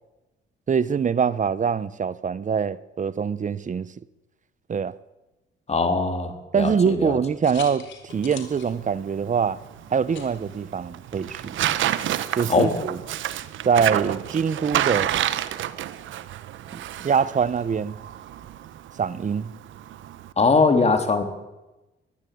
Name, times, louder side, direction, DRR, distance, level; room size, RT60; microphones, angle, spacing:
voice 1, 0.7-3.9 4.7-4.9 6.5-7.9 8.1-9.6 9.9-11.6 12.4-13.0 13.6-15.1 16.7-18.0 19.0-19.5, right 6 dB, 40° right, 1.0 m, -24 dB
voice 2, 5.7-7.2 12.5-12.8 20.4-21.2, left 4 dB, 35° left, 3.8 m, -21 dB
sound 1, 7.0-11.7, left 6 dB, 70° left, 4.2 m, -45 dB
Tearing, 8.1-20.3, right 12 dB, 75° right, 1.2 m, -30 dB
23.5 x 15.5 x 8.7 m
cardioid pair, 90°, 20 cm